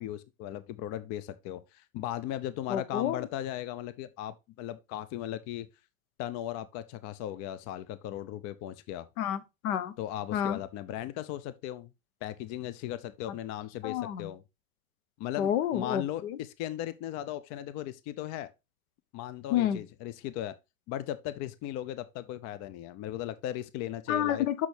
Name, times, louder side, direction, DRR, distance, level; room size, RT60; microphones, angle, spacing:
voice 1, 0.0-5.7 6.2-9.1 10.0-11.9 12.2-14.4 15.2-18.5 19.1-20.6 20.9-24.5, left 12 dB, 40° left, 0.5 m, -37 dB
voice 2, 2.7-3.2 9.2-9.9 10.3-10.6 13.8-14.3 15.4-16.4 19.5-19.8 24.1-24.7, left 10 dB, 70° left, 0.9 m, -29 dB
6.1 x 6.0 x 3.3 m
hypercardioid pair, 100°, 42 cm